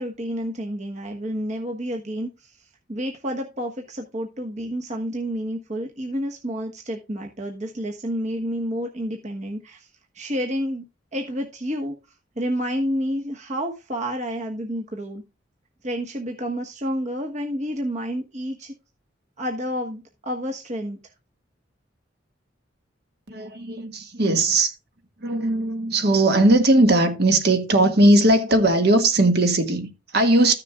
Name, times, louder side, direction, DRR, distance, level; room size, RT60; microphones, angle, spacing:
voice 1, 0.0-2.3 2.9-9.9 10.1-11.9 12.4-15.2 15.8-18.7 19.4-21.0, equal, 40° right, 1.3 m, -29 dB
voice 2, 23.3-24.7 25.2-30.6, right 2 dB, 55° right, 1.6 m, -19 dB
14.5 x 6.7 x 2.3 m
head